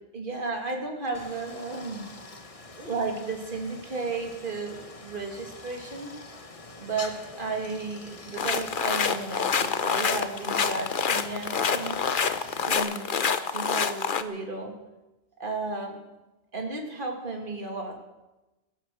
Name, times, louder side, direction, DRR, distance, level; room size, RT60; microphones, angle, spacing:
voice 1, 0.1-2.0 2.8-6.1 6.8-7.1 7.4-12.0 12.7-13.1 13.5-14.7 15.4-16.0 16.5-18.0, right 3 dB, 45° right, 2 dB, 2.5 m, -33 dB
Stream, 1.1-12.8, left 2 dB, 30° left, 1.2 m, -45 dB
sound 1, 8.4-14.2, left 6 dB, 50° left, 1.0 m, -27 dB
17.0 x 11.0 x 7.7 m, 1.0 s
omnidirectional pair, 1.2 m